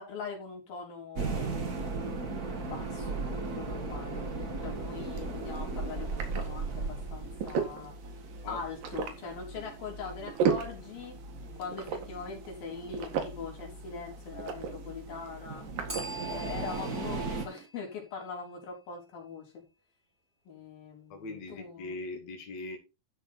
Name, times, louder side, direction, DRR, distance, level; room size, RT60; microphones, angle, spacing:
voice 1, 0.0-1.5 2.1-7.9 8.5-11.2 11.6-15.7 16.2-19.5 20.5-22.0, left 5 dB, 90° left, 5.6 m, -42 dB
sound 1, 1.2-17.5, right 3 dB, 35° right, 1.7 m, -38 dB
sound 2, 4.8-17.7, right 6 dB, 75° right, 3.5 m, -38 dB
Bell, 15.9-18.7, right 1 dB, 15° right, 2.1 m, -46 dB
voice 2, 21.1-22.8, left 2 dB, 55° left, 3.4 m, -40 dB
13.0 x 5.5 x 4.3 m
omnidirectional pair, 4.0 m